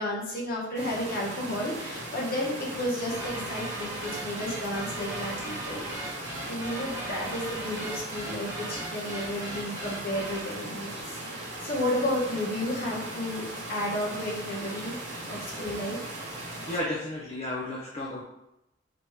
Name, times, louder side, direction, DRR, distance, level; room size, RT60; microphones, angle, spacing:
voice 1, 0.0-6.2 6.4-15.0 15.3-16.0, left 1 dB, 50° left, -3 dB, 1.1 m, -32 dB
sound 1, 0.8-16.8, right 1 dB, 35° right, 1.0 m, -38 dB
sound 2, 3.1-10.5, right 1 dB, 20° right, 1.3 m, -39 dB
voice 2, 16.7-18.2, left 1 dB, 35° left, -5 dB, 0.5 m, -33 dB
4.1 x 3.3 x 3.0 m, 0.86 s
head